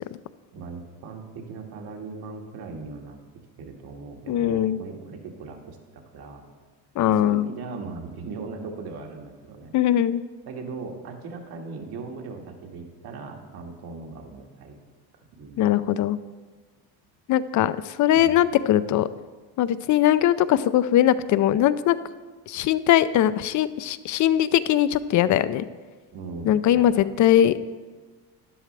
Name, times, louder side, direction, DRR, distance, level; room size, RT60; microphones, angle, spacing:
voice 1, 0.5-3.2 3.6-6.4 7.0-9.8 10.5-14.8 15.4-15.7 16.0-16.1 18.1-18.4 26.1-27.1, right 4 dB, 65° right, 2 dB, 1.9 m, -39 dB
voice 2, 4.3-4.8 7.0-7.5 9.7-10.2 15.6-16.2 17.3-17.7 18.0-19.1 19.6-22.0 22.5-25.6 26.5-27.5, left 11 dB, 45° left, 15 dB, 0.5 m, -20 dB
12.5 x 10.5 x 3.3 m, 1.4 s
cardioid pair, 115°, 41 cm